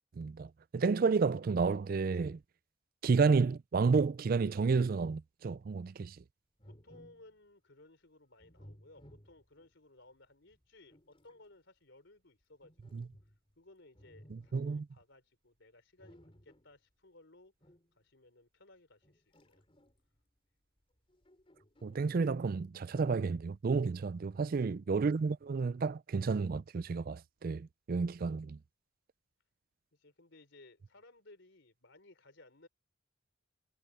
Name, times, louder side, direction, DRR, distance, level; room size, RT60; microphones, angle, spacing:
voice 1, 0.2-2.4 3.0-6.2 12.9-13.0 14.3-14.8 21.8-28.6, right 4 dB, 45° right, 0.3 m, -31 dB
voice 2, 6.6-19.7 23.8-23.9 29.9-32.7, left 2 dB, 60° left, 3.9 m, -60 dB
sound 1, 6.6-7.4 8.4-9.7 10.5-11.4 12.6-13.5 13.9-14.8 16.0-16.8 17.6-17.9 19.0-20.2 21.0-22.2 22.8-23.6 24.2-25.0, equal, 25° left, 3.9 m, -60 dB
head